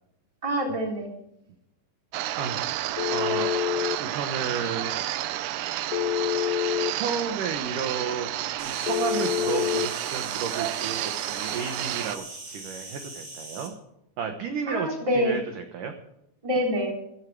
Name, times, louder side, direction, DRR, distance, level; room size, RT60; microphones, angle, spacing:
voice 1, 0.4-1.1 14.7-15.4 16.4-16.9, equal, 10° right, 1 dB, 2.6 m, -26 dB
sound 1, 2.1-12.2, right 14 dB, 90° right, 3.1 m, -31 dB
voice 2, 2.4-3.5 4.0-4.9 6.9-8.3 8.6-13.7 14.2-15.9, right 6 dB, 70° right, 6 dB, 2.1 m, -33 dB
Telephone, 3.0-4.0 5.9-6.9 8.9-9.9, left 12 dB, 75° left, 2.6 m, -26 dB
Insect, 8.6-13.7, right 2 dB, 25° right, 3.7 m, -40 dB
16.0 x 12.5 x 4.8 m, 0.83 s
omnidirectional pair, 5.2 m